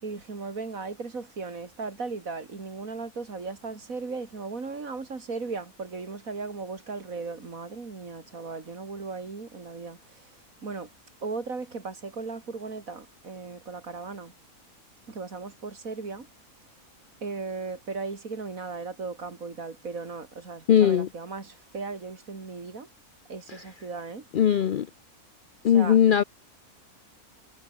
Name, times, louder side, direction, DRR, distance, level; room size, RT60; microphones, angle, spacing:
voice 1, 0.0-10.3 10.6-10.9 11.2-14.3 15.1-16.3 17.2-22.9 23.3-24.2 25.7-26.0, right 4 dB, 65° right, 3.2 m, -37 dB
voice 2, 20.7-21.1 23.5-23.6 24.3-24.9 25.6-26.2, left 9 dB, 75° left, 0.4 m, -20 dB
omnidirectional pair, 1.5 m